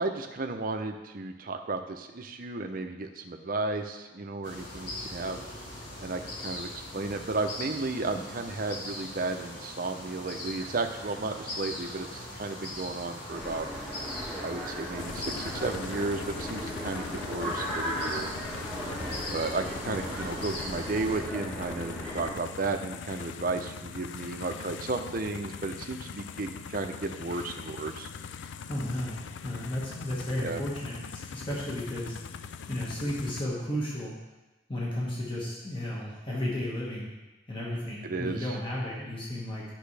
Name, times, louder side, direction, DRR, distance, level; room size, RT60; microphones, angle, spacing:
voice 1, 0.0-5.4 6.0-13.7 14.4-18.3 19.3-28.1 30.3-30.6 38.0-38.6, right 3 dB, 50° right, 5 dB, 0.6 m, -33 dB
sound 1, 4.4-21.2, left 1 dB, 60° left, 1.6 m, -41 dB
sound 2, 13.3-22.3, equal, 5° left, 1.4 m, -37 dB
sound 3, 15.0-33.5, left 6 dB, 75° left, 0.4 m, -42 dB
voice 2, 28.7-32.1 32.7-34.1 34.7-37.1 37.5-39.6, left 1 dB, 30° left, -6 dB, 1.7 m, -33 dB
10.0 x 6.0 x 3.4 m, 1.1 s
head